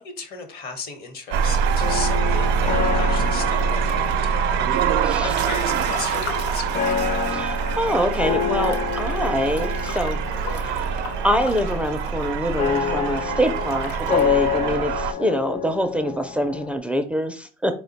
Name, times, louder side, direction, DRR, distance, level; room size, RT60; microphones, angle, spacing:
voice 1, 0.0-4.7 5.2-6.9, left 5 dB, 65° left, 6 dB, 1.0 m, -35 dB
sound 1, 1.3-15.1, right 7 dB, 85° right, 0.4 m, -24 dB
sound 2, 1.8-16.8, left 8 dB, 45° left, 0.5 m, -29 dB
Breathing / Bathtub (filling or washing) / Splash splatter, 2.7-4.3 4.8-8.0 8.2-8.3 8.6-12.8 13.4-14.2, left 6 dB, 85° left, 0.6 m, -38 dB
voice 2, 7.3-10.2 10.6-10.9 11.2-17.8, equal, 5° right, 6 dB, 0.4 m, -25 dB
4.3 x 2.1 x 3.9 m, 0.38 s
cardioid pair, 110°, 17 cm